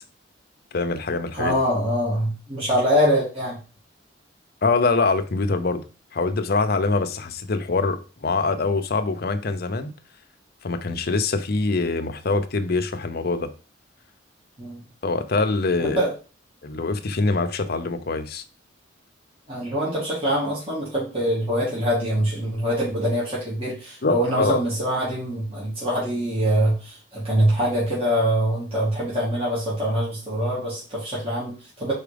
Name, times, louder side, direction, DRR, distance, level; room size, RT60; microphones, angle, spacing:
voice 1, 0.7-1.6 4.6-5.8 6.1-9.9 10.6-13.5 15.0-16.0 16.6-18.4 24.0-24.6, left 3 dB, 55° left, 0.7 m, -24 dB
voice 2, 1.3-3.6 14.6-14.8 15.8-16.1 19.5-31.9, equal, 30° right, 2.7 m, -24 dB
4.8 x 4.4 x 5.1 m
head